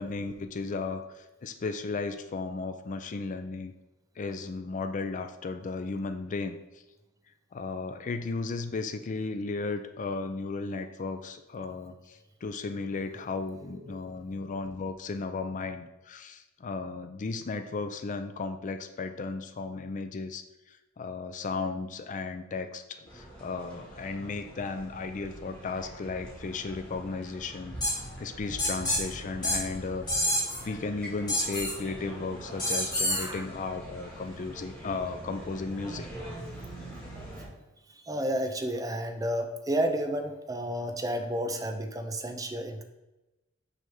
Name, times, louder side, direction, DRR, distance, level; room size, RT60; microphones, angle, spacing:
voice 1, 0.0-3.7 4.2-6.8 7.5-36.1, left 3 dB, 40° left, 8 dB, 0.4 m, -35 dB
sound 1, 23.0-37.5, right 1 dB, 5° left, 2.0 m, -44 dB
sound 2, 27.8-27.9 28.6-29.0 29.4-29.6 30.1-30.6 31.3-31.7 32.6-33.3, left 1 dB, 20° left, 1.9 m, -27 dB
voice 2, 33.1-33.5 37.9-42.8, right 1 dB, 15° right, 6 dB, 0.5 m, -31 dB
6.3 x 3.4 x 5.4 m, 1.0 s
head